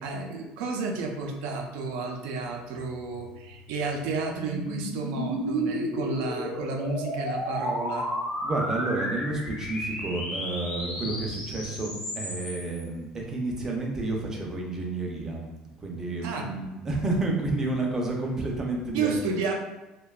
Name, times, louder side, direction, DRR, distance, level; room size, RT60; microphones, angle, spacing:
voice 1, 0.0-8.1 16.2-16.5 18.9-19.5, right 4 dB, 85° right, 2 dB, 0.4 m, -31 dB
sound 1, 3.1-12.8, equal, 60° left, 0.9 m, -33 dB
voice 2, 8.4-15.5 15.8-19.5, right 2 dB, 20° right, 0 dB, 0.4 m, -30 dB
2.6 x 2.2 x 2.3 m, 1.1 s
cardioid pair, 150°, 2 cm